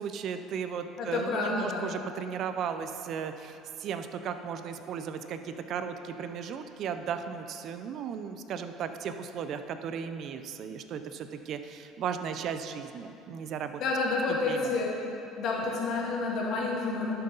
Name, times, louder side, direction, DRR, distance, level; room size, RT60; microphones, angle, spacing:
voice 1, 0.0-13.8 14.3-14.7, right 7 dB, 55° right, 9 dB, 0.6 m, -36 dB
voice 2, 1.0-1.8 13.8-14.9 15.4-17.1, left 3 dB, 55° left, -3 dB, 1.9 m, -29 dB
11.5 x 6.7 x 4.0 m, 2.8 s
supercardioid pair, 105°, 0 cm